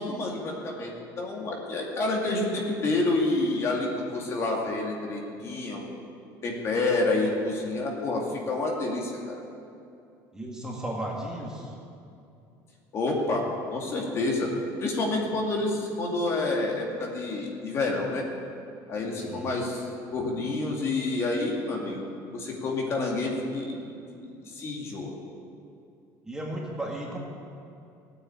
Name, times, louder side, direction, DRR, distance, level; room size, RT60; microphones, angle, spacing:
voice 1, 0.0-5.8 6.4-9.4 12.9-14.5 14.8-18.2 18.9-22.0 22.3-23.8 24.1-25.1, left 2 dB, 35° left, -1 dB, 2.3 m, -28 dB
voice 2, 10.3-11.7 19.1-19.5 26.2-27.2, right 1 dB, 10° right, -3 dB, 2.1 m, -35 dB
17.0 x 9.3 x 8.7 m, 2.6 s
cardioid pair, 165°, 8 cm